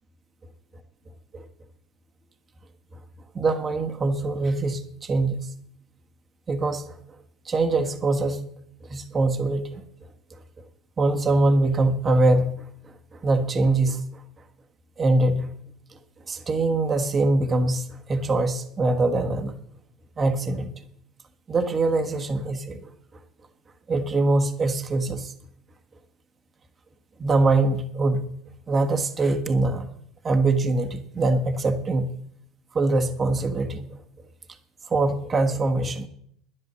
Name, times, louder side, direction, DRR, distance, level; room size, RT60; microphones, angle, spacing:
voice 1, 3.3-5.4 6.5-6.9 7.4-8.4 8.9-9.8 11.0-12.6 13.1-14.0 15.0-15.5 16.3-19.6 20.2-20.7 21.5-22.8 23.9-25.3 27.2-28.3 28.7-29.9 30.2-32.2 32.7-33.9 34.9-36.1, right 2 dB, 30° right, 6 dB, 1.4 m, -23 dB
11.0 x 10.0 x 7.0 m, 0.69 s
hypercardioid pair, 80°, 0 cm